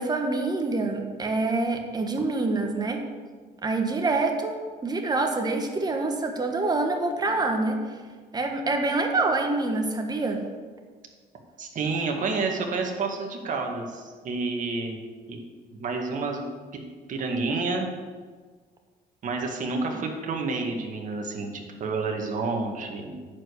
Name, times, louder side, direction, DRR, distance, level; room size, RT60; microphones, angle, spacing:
voice 1, 0.0-3.0 3.6-4.6 4.8-7.8 8.3-10.4 19.9-20.0, right 3 dB, 25° right, 4 dB, 1.5 m, -26 dB
voice 2, 11.6-15.0 15.3-15.4 15.8-16.4 17.1-17.9 19.2-23.2, right 3 dB, 50° right, 2 dB, 1.9 m, -29 dB
10.5 x 5.1 x 8.2 m, 1.5 s
cardioid pair, 110°, 17 cm